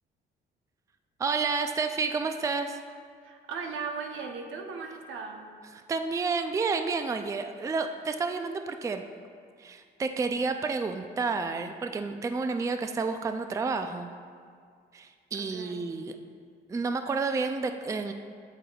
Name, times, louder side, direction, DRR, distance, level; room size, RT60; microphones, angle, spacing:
voice 1, 1.2-2.8 5.7-9.0 9.6-14.1 14.9-16.2 16.7-18.1, right 4 dB, 15° right, 7 dB, 0.3 m, -30 dB
voice 2, 3.2-5.5 15.4-15.9, right 5 dB, 80° right, 2 dB, 0.8 m, -38 dB
7.9 x 7.5 x 2.4 m, 2.1 s
cardioid pair, 90°, 20 cm